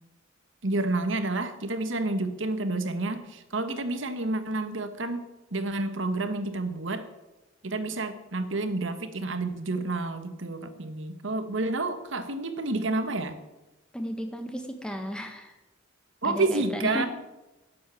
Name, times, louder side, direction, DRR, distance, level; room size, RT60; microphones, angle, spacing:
voice 1, 0.6-5.2 5.5-7.0 7.6-13.4 16.2-17.1, right 2 dB, 65° right, 9 dB, 1.3 m, -29 dB
voice 2, 13.9-15.5 16.2-17.1, equal, 5° left, 5 dB, 1.5 m, -34 dB
11.5 x 7.6 x 9.1 m, 1.0 s
head